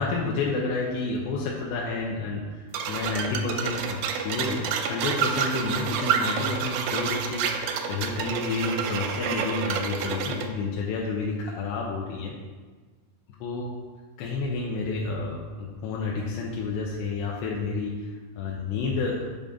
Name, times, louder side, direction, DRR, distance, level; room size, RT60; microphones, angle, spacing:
voice 1, 0.0-7.5 7.9-12.4 13.4-13.7 14.2-19.3, left 3 dB, 90° left, -3 dB, 2.9 m, -30 dB
sound 1, 2.7-10.5, right 7 dB, 85° right, 2.1 m, -29 dB
8.7 x 5.3 x 3.6 m, 1.4 s
omnidirectional pair, 4.8 m